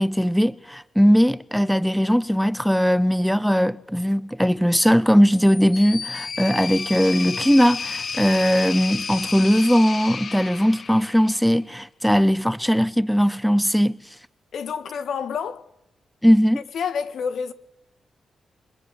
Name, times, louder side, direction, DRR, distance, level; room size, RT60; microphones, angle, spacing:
voice 1, 0.0-14.0 16.2-16.6, equal, ahead, 0.9 m, -19 dB
sound 1, 5.3-11.5, left 5 dB, 55° left, 1.2 m, -32 dB
voice 2, 14.5-15.6 16.7-17.5, left 6 dB, 75° left, 1.7 m, -28 dB
25.5 x 19.5 x 9.8 m
supercardioid pair, 50°, 0 cm